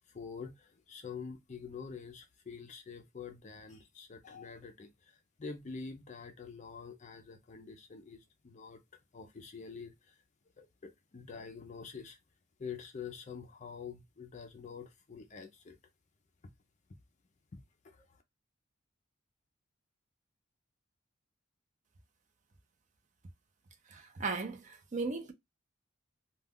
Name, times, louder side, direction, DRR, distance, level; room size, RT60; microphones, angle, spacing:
voice 1, 0.1-10.2 10.6-12.2 12.6-15.8 17.5-18.2, left 5 dB, 35° left, 0.4 m, -47 dB
voice 2, 23.9-25.3, right 4 dB, 35° right, 0.5 m, -37 dB
2.3 x 2.2 x 3.4 m
head